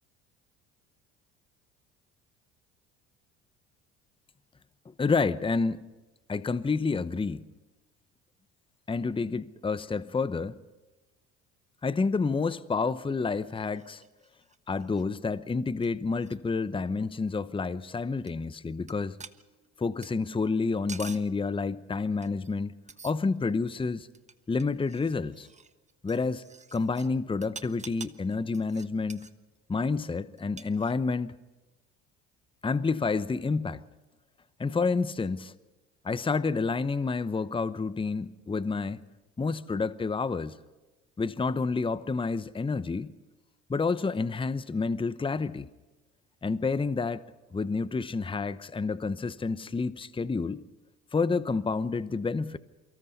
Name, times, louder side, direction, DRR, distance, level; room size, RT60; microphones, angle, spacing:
voice 1, 4.9-5.8 6.3-7.5 8.9-10.6 11.8-14.0 14.7-19.2 19.8-22.7 23.0-24.1 24.5-25.5 26.0-26.4 26.7-29.3 29.7-31.3 32.6-33.8 34.6-35.5 36.0-39.0 39.4-40.5 41.2-43.1 43.7-45.7 46.4-47.2 47.5-50.6 51.1-52.6, left 4 dB, 15° left, 0.9 m, -29 dB
sound 1, 13.4-15.1 15.5-15.6 15.8-15.9 16.1-16.4 18.3-18.4 18.9-19.0 19.2-20.1 20.6-21.3 22.2-22.6 22.9-23.5 24.0-27.1 27.4-29.3 30.4-31.2, right 4 dB, 20° right, 1.3 m, -48 dB
29.5 x 24.0 x 4.1 m
hypercardioid pair, 60°, 34 cm